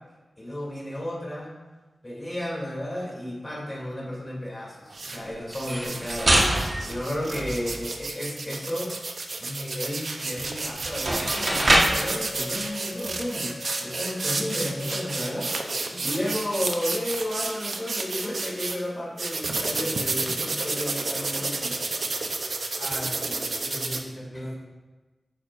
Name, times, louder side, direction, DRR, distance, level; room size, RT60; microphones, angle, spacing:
voice 1, 0.4-1.5 2.0-6.4 6.9-8.9 9.4-15.5 15.9-21.7, left 1 dB, 20° left, -5 dB, 3.1 m, -33 dB
sound 1, 4.9-5.2 5.5-18.8 19.2-24.0, right 3 dB, 60° right, 0.9 m, -31 dB
sound 2, 5.5-7.9 10.4-10.5 10.9-12.1, right 1 dB, 45° right, 1.6 m, -24 dB
Wind instrument woodwind instrument, 11.3-15.9, left 2 dB, 75° left, 1.3 m, -42 dB
voice 2, 22.7-24.5, equal, 5° right, -4 dB, 2.6 m, -37 dB
11.0 x 9.3 x 2.7 m, 1.2 s
wide cardioid pair, 115°, 0 cm